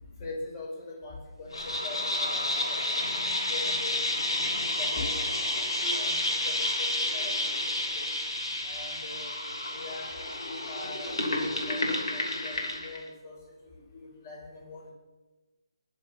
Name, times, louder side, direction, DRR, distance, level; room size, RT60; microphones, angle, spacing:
voice 1, 0.2-4.4 4.8-7.6 7.9-8.0 8.6-9.3 9.7-13.4 13.6-14.9, left 2 dB, 35° left, -1 dB, 5.4 m, -42 dB
sound 1, 1.5-13.0, left 1 dB, 75° left, 3.0 m, -30 dB
20.5 x 7.1 x 5.9 m, 1.2 s
figure-of-eight pair, 150°, 3 cm